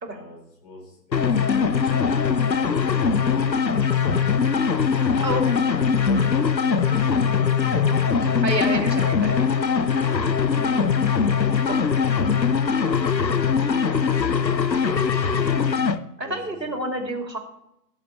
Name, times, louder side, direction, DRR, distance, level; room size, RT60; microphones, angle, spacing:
voice 1, 0.0-2.0 2.5-3.9 6.0-8.8 10.5-11.1 14.9-15.6 16.2-17.0, left 1 dB, 25° left, -2 dB, 4.6 m, -44 dB
sound 1, 1.1-16.0, left 6 dB, 85° left, 0.9 m, -21 dB
voice 2, 5.2-5.5 8.4-9.4 11.6-11.8 16.2-17.4, right 1 dB, 80° right, 3 dB, 2.9 m, -28 dB
17.0 x 7.2 x 4.5 m, 0.82 s
figure-of-eight pair, 150°, 50 cm